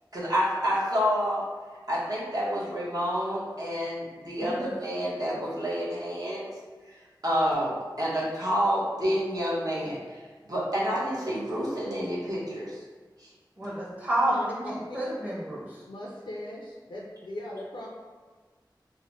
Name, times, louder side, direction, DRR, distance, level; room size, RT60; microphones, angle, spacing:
voice 1, 0.1-1.4 1.9-6.5 6.9-7.0 7.2-10.2 10.5-12.8 13.2-13.3, equal, 50° right, -7 dB, 1.0 m, -28 dB
voice 2, 4.4-4.7 13.6-15.6, right 1 dB, 20° right, -7 dB, 0.9 m, -29 dB
voice 3, 14.3-14.8 15.2-15.3 15.9-17.9, left 1 dB, 85° left, -4 dB, 0.4 m, -39 dB
3.1 x 2.1 x 2.9 m, 1.4 s
wide cardioid pair, 40°, 8 cm